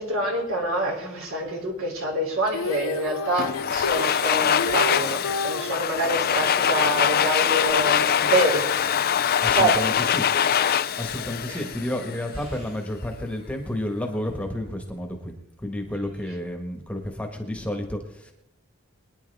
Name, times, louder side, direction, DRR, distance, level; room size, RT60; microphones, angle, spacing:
voice 1, 0.0-8.7 9.5-10.0 11.5-11.6, right 1 dB, 65° right, 1 dB, 3.1 m, -26 dB
Female singing, 2.5-5.7 7.7-7.8, left 3 dB, 90° left, 0.6 m, -30 dB
Domestic sounds home sounds, 3.4-12.3, left 8 dB, 45° left, 0.5 m, -23 dB
voice 2, 9.4-10.3 11.0-18.3, left 1 dB, 5° left, 3 dB, 1.5 m, -31 dB
23.5 x 10.0 x 3.5 m, 0.80 s
head